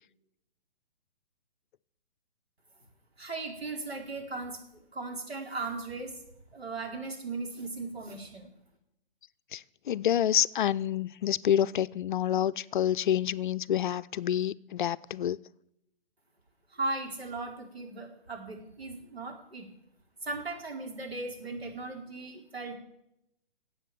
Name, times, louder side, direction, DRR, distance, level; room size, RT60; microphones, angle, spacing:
voice 1, 3.2-6.2 6.5-8.5 16.7-19.7 20.2-22.8, right 3 dB, 85° right, 4.3 m, -37 dB
voice 2, 9.5-15.4, left 10 dB, 55° left, 0.5 m, -28 dB
13.0 x 7.9 x 9.1 m
hypercardioid pair, 135°, 30 cm